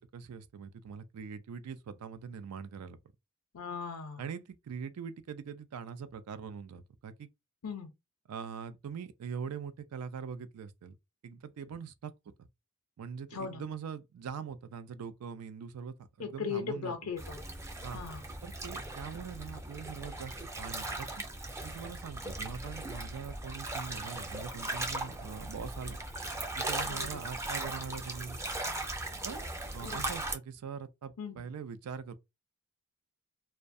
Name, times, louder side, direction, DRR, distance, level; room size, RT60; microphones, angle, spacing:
voice 1, 0.0-3.0 4.2-7.3 8.3-11.0 11.2-12.1 13.0-16.9 17.8-18.0 18.4-21.1 21.6-26.0 26.6-28.4 29.2-29.4 29.7-32.2, right 6 dB, 85° right, 0.4 m, -42 dB
voice 2, 3.5-4.2 7.6-7.9 13.3-13.6 16.2-17.4 17.9-18.2 26.8-27.2 29.8-30.1 31.2-31.4, left 6 dB, 75° left, 0.5 m, -38 dB
sound 1, 17.2-30.4, right 2 dB, 15° right, 0.4 m, -38 dB
2.3 x 2.1 x 2.6 m
head